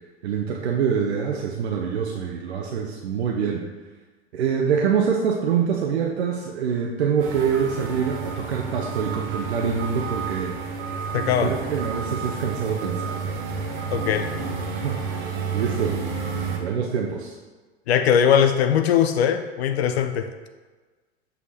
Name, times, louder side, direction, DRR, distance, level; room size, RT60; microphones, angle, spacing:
voice 1, 0.2-3.6 4.3-10.7 11.2-13.3 14.7-16.0 16.5-17.4, right 7 dB, 70° right, 1 dB, 0.7 m, -25 dB
sound 1, 7.2-16.6, right 5 dB, 35° right, 1.0 m, -30 dB
voice 2, 11.1-11.5 13.9-14.3 17.9-20.3, left 8 dB, 65° left, 8 dB, 0.5 m, -20 dB
6.3 x 5.6 x 2.7 m, 1.3 s
figure-of-eight pair, 85°, 34 cm